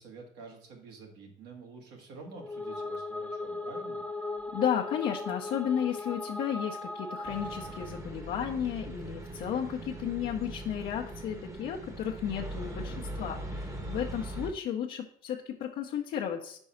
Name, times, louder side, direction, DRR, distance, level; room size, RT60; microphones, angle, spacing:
voice 1, 0.0-4.0 12.8-13.1, right 4 dB, 80° right, 1 dB, 1.8 m, -48 dB
sound 1, 2.3-8.1, left 2 dB, 5° left, 0.3 m, -38 dB
voice 2, 4.5-16.6, left 9 dB, 65° left, -2 dB, 0.7 m, -33 dB
sound 2, 7.2-14.5, right 1 dB, 15° right, 1.0 m, -40 dB
5.3 x 4.8 x 5.6 m, 0.63 s
cardioid pair, 110°, 17 cm